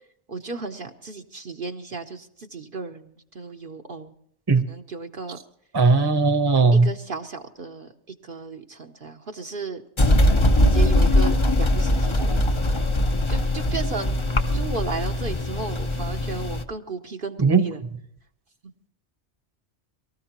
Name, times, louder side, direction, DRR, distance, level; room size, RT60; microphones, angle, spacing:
voice 1, 0.3-4.1 4.7-5.4 6.7-7.9 8.2-9.8 10.6-12.5 13.3-14.2 14.5-17.8, right 4 dB, 55° right, 4 dB, 1.0 m, -34 dB
voice 2, 5.7-6.9 17.4-17.7, right 4 dB, 20° right, 8 dB, 0.9 m, -18 dB
sound 1, 10.0-16.6, left 1 dB, 30° left, 0.7 m, -21 dB
23.5 x 14.0 x 3.0 m, 0.71 s
omnidirectional pair, 1.2 m